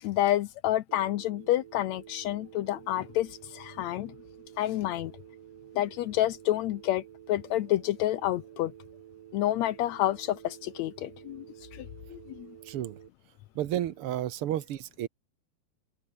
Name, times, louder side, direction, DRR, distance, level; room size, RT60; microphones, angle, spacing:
voice 1, 0.0-4.2 4.6-5.1 5.8-8.7 9.3-11.5 11.7-12.6, left 14 dB, 75° left, 1.8 m, -29 dB
Telephone, 0.9-13.1, right 13 dB, 90° right, 2.8 m, -51 dB
voice 2, 12.6-13.0 13.5-15.1, right 12 dB, 60° right, 1.5 m, -32 dB
open air
omnidirectional pair, 3.6 m